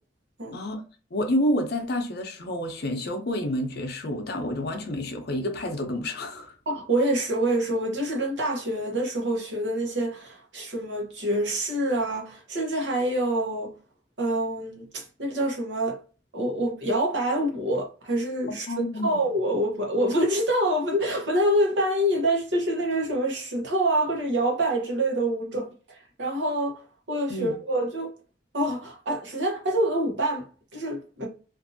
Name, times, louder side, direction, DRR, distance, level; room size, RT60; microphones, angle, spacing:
voice 1, 1.1-6.5 18.7-19.2 27.3-27.5, left 1 dB, 60° left, 0.7 m, -29 dB
voice 2, 6.7-13.7 14.2-16.0 16.3-26.8 27.1-28.1 28.5-31.3, right 1 dB, 70° right, 0.9 m, -26 dB
2.6 x 2.6 x 2.6 m
head